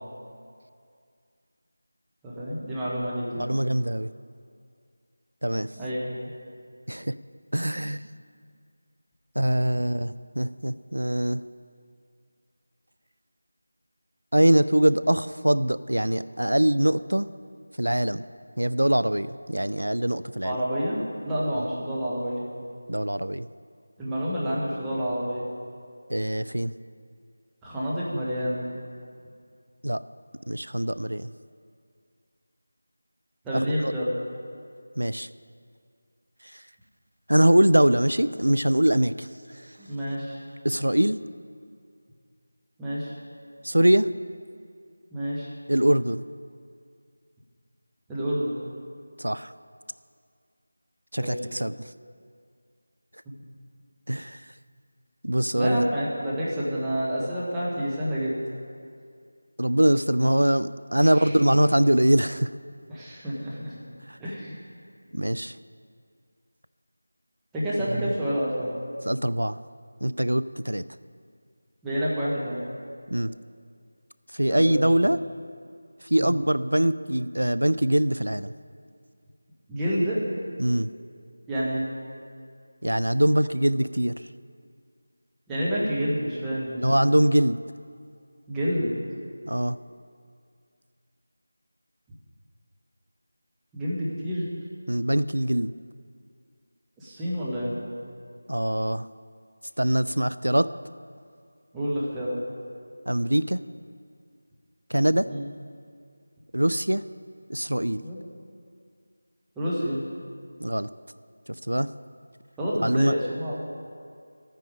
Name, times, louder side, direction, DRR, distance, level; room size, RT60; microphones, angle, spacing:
voice 1, 2.2-3.5 5.8-6.0 20.4-22.5 24.0-25.5 27.6-28.6 33.4-34.2 39.8-40.4 42.8-43.1 45.1-45.5 48.1-48.6 51.2-51.4 53.2-53.3 55.5-58.4 61.0-61.3 62.9-63.7 64.2-64.5 67.5-68.7 71.8-72.6 74.5-75.1 76.2-76.3 79.7-80.2 81.5-81.9 85.5-86.9 88.5-88.9 93.7-94.5 97.0-97.7 101.7-102.4 105.3-105.4 108.0-108.2 109.6-110.0 112.6-113.8, equal, 5° right, -9 dB, 1.3 m, -28 dB
voice 2, 3.4-4.1 5.4-5.7 6.9-7.1 7.5-8.0 9.4-11.4 14.3-17.3 17.8-18.2 18.6-20.6 22.9-23.5 26.1-26.7 29.8-30.0 30.5-31.3 33.5-33.9 35.0-35.3 36.5-36.6 37.3-39.3 39.5-39.7 40.6-41.2 43.6-44.1 45.7-46.2 49.2-49.5 51.1-51.9 54.1-54.4 55.2-55.9 59.6-62.5 64.1-64.2 65.1-65.6 67.9-68.1 69.1-69.6 70.0-70.8 73.1-73.3 74.3-75.2 76.0-78.5 80.6-80.9 82.8-84.2 86.8-87.6 89.4-89.8 94.9-95.7 98.5-99.1 99.8-100.7 103.1-103.6 104.9-105.3 106.5-107.0 107.5-108.0 110.6-110.9 111.6-111.9 112.8-113.1, right 1 dB, 85° right, 15 dB, 0.4 m, -23 dB
12.0 x 9.2 x 5.0 m, 2.3 s
figure-of-eight pair, 170°, 0 cm